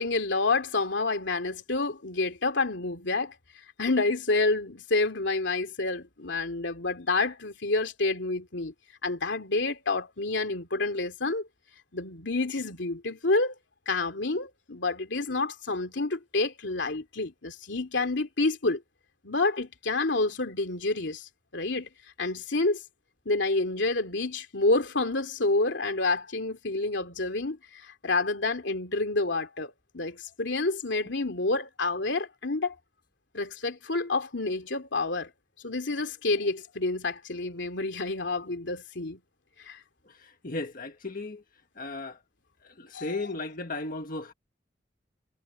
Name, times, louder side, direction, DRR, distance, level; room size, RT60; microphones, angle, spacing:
voice 1, 0.0-3.3 3.8-8.7 9.0-11.5 11.9-13.5 13.9-18.8 19.2-21.9 22.2-22.8 23.3-32.7 33.3-35.3 35.6-39.2 39.7-39.8 42.9-43.1, left 3 dB, 85° left, 2.7 m, -28 dB
voice 2, 40.1-41.4 41.7-42.2 42.6-44.3, left 2 dB, 50° left, 1.6 m, -36 dB
head